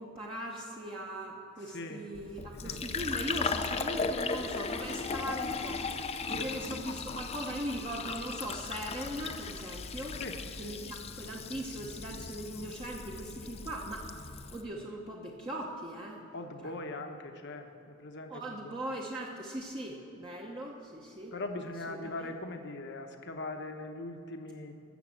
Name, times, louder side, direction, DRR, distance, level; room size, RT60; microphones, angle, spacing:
voice 1, 0.0-10.2 10.6-14.1 14.5-16.2 16.6-16.7 18.3-21.3 21.9-22.0, right 1 dB, 25° right, -2 dB, 0.9 m, -40 dB
voice 2, 1.6-2.1 2.6-2.8 6.3-6.7 10.2-10.8 16.3-18.8 21.3-24.8, left 2 dB, 55° left, 5 dB, 1.0 m, -41 dB
Fill (with liquid), 2.1-14.6, left 4 dB, 30° left, 0.5 m, -37 dB
13.5 x 7.2 x 7.3 m, 2.8 s
head